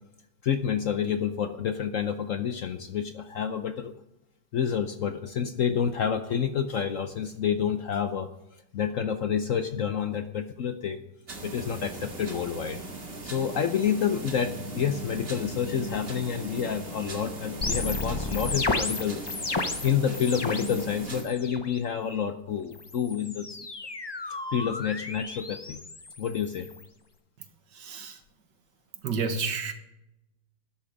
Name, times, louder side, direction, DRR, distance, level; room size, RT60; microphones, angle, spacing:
voice 1, 0.4-3.9 4.5-8.3 8.7-11.0 11.4-12.8 13.2-19.2 19.8-23.5 24.5-25.8 26.2-26.7, left 8 dB, 60° left, 9 dB, 0.9 m, -28 dB
sound 1, 11.3-21.2, right 2 dB, 35° right, 1.9 m, -39 dB
sound 2, 17.6-20.8 21.1-21.7 22.7-26.8, left 3 dB, 45° left, 0.3 m, -33 dB
voice 2, 27.7-28.2 29.0-29.7, right 5 dB, 75° right, 7 dB, 1.9 m, -30 dB
13.0 x 10.5 x 5.2 m, 0.89 s
omnidirectional pair, 1.9 m